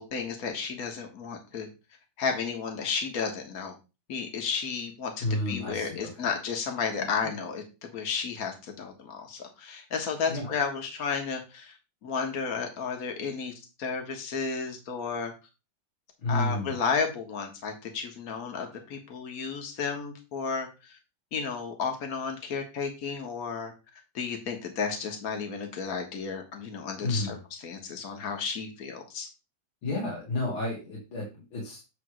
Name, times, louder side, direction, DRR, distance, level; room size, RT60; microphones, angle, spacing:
voice 1, 0.0-1.7 2.2-3.8 4.1-11.7 12.0-13.5 13.8-15.3 16.3-21.0 21.3-23.7 24.1-29.3, left 5 dB, 50° left, 4 dB, 1.9 m, -33 dB
voice 2, 5.2-6.3 7.2-7.3 10.3-10.5 16.2-16.8 27.0-27.4 29.8-31.8, left 2 dB, 85° left, -4 dB, 3.3 m, -31 dB
9.2 x 3.4 x 6.4 m, 0.29 s
omnidirectional pair, 2.2 m